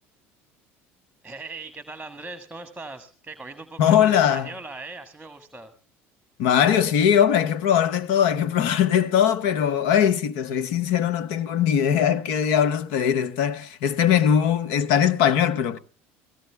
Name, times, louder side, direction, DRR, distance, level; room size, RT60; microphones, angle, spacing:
voice 1, 1.2-5.7, right 3 dB, 15° right, 1.4 m, -39 dB
voice 2, 3.8-4.5 6.4-15.8, left 9 dB, 75° left, 0.9 m, -21 dB
18.0 x 15.5 x 3.5 m
hypercardioid pair, 70°, 6 cm